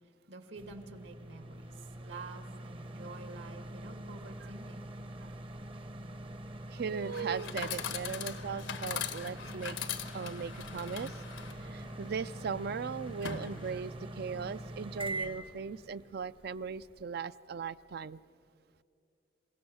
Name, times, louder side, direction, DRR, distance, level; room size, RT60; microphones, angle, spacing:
voice 1, 0.3-4.9, right 3 dB, 75° right, 7 dB, 2.1 m, -48 dB
sound 1, 0.6-17.0, right 1 dB, 30° right, 0.8 m, -44 dB
voice 2, 6.7-9.8 10.1-11.1 11.6-18.2, right 6 dB, 55° right, 16 dB, 0.4 m, -38 dB
Chatter / Coin (dropping), 7.0-14.0, left 7 dB, 90° left, 1.1 m, -42 dB
28.0 x 16.5 x 6.3 m, 2.6 s
head